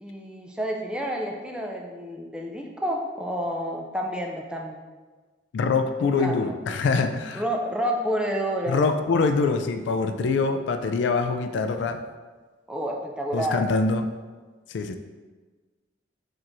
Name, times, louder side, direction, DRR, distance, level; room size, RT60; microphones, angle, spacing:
voice 1, 0.0-4.8 6.2-6.5 7.3-8.8 12.7-13.6, equal, 5° right, 1 dB, 0.4 m, -29 dB
voice 2, 5.5-7.4 8.7-12.0 13.3-14.1 14.7-15.0, left 4 dB, 70° left, 7 dB, 0.3 m, -24 dB
4.4 x 4.3 x 2.6 m, 1.3 s
head